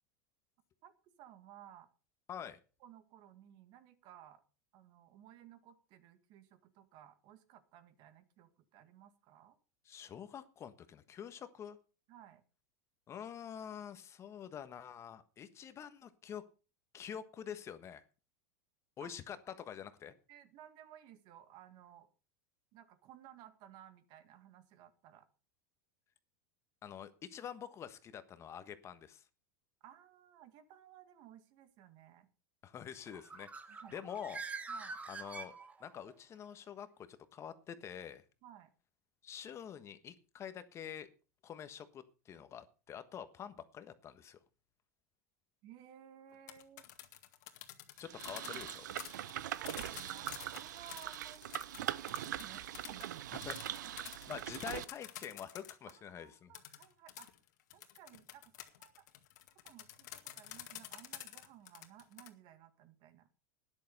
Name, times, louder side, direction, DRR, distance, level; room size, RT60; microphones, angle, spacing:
voice 1, 0.8-1.9 2.4-2.5 2.8-4.4 4.7-9.6 12.1-12.4 19.0-19.1 20.3-22.1 22.7-25.3 29.8-32.3 33.7-34.0 34.7-35.0 38.4-38.7 45.6-46.9 48.4-48.6 49.4-53.5 53.8-54.3 55.9-57.3 57.7-59.1 59.6-63.3, right 11 dB, 50° right, 11 dB, 1.9 m, -57 dB
voice 2, 2.3-2.6 9.8-11.8 13.1-16.4 16.9-18.0 19.0-20.1 26.8-29.2 32.6-34.4 35.1-35.5 35.8-38.2 39.2-41.1 41.4-44.4 48.0-48.8 53.4-53.6 54.3-56.5, left 8 dB, 30° left, 11 dB, 1.3 m, -47 dB
Bird, 33.1-36.1, right 4 dB, 15° right, 1.3 m, -45 dB
sound 1, 46.3-56.0 56.5-62.3, left 13 dB, 75° left, 2.0 m, -50 dB
sound 2, 48.0-54.8, right 12 dB, 85° right, 0.7 m, -42 dB
12.5 x 10.5 x 5.5 m, 0.35 s
supercardioid pair, 130°, 10 cm